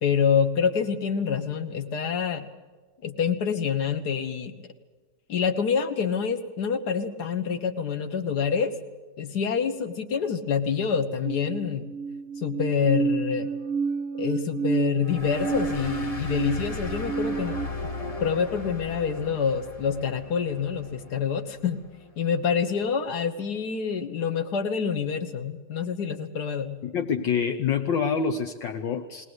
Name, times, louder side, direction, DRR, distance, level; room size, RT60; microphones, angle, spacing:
voice 1, 0.0-2.5 3.0-4.6 5.3-8.7 9.2-11.9 12.4-13.5 14.1-17.6 18.2-21.8 22.2-26.8, left 6 dB, 55° left, 9 dB, 1.9 m, -27 dB
sound 1, 11.2-17.7, right 5 dB, 55° right, 1.0 m, -30 dB
sound 2, 15.0-22.1, left 2 dB, 25° left, 0.8 m, -37 dB
voice 2, 26.8-29.2, left 6 dB, 70° left, 4 dB, 1.7 m, -26 dB
21.0 x 19.5 x 8.1 m, 1.3 s
omnidirectional pair, 2.1 m